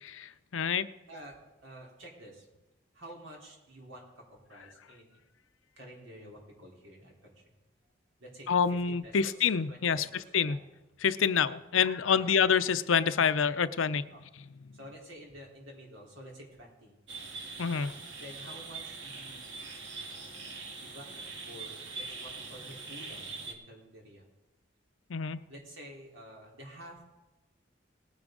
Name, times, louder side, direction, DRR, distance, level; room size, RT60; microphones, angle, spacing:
voice 1, 0.0-0.9 8.5-10.0 10.3-10.6 11.0-14.0 17.6-17.9 25.1-25.4, left 6 dB, 85° left, 14 dB, 0.6 m, -27 dB
voice 2, 1.1-2.5 2.9-5.2 5.8-7.4 8.2-10.6 12.1-12.4 14.1-14.2 14.7-17.0 18.2-19.6 20.8-24.3 25.5-27.0, equal, 80° right, -2 dB, 3.9 m, -50 dB
sound 1, 17.1-23.5, right 4 dB, 65° right, 1.7 m, -43 dB
19.0 x 9.5 x 3.9 m, 1.1 s
head